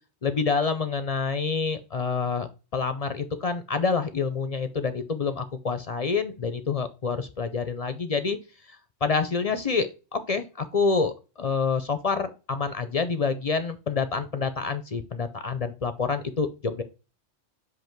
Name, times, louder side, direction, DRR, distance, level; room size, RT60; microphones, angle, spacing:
voice 1, 0.2-2.5 2.7-8.4 9.0-16.8, left 5 dB, 45° left, 10 dB, 0.5 m, -27 dB
8.0 x 2.7 x 4.4 m, 0.32 s
omnidirectional pair, 1.2 m